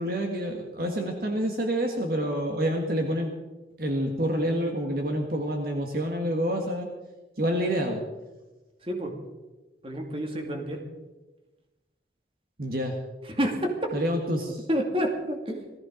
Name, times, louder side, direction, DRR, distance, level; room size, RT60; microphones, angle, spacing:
voice 1, 0.0-3.3 3.8-6.9 7.4-8.0 12.6-13.0 13.9-14.6, equal, 55° right, 3 dB, 1.7 m, -28 dB
voice 2, 8.8-9.1 9.8-10.8 13.2-13.9 14.3-15.7, equal, 30° right, 2 dB, 2.3 m, -29 dB
18.5 x 14.0 x 5.1 m, 1.1 s
head